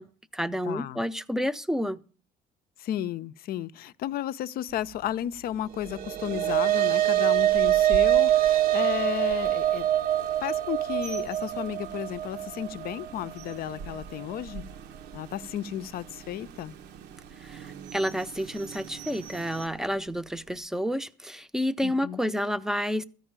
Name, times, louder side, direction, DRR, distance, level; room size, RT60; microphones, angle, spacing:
voice 1, 0.0-2.0 17.4-23.0, equal, 5° right, 0.6 m, -30 dB
voice 2, 0.6-1.0 2.8-9.9 10.4-14.6 15.1-16.7 21.8-22.2, left 11 dB, 60° left, 0.5 m, -33 dB
sound 1, 5.8-14.4, right 13 dB, 60° right, 0.6 m, -25 dB
Rain, 6.4-19.7, right 6 dB, 85° right, 0.8 m, -45 dB
13.5 x 5.4 x 8.7 m
cardioid pair, 110°, 17 cm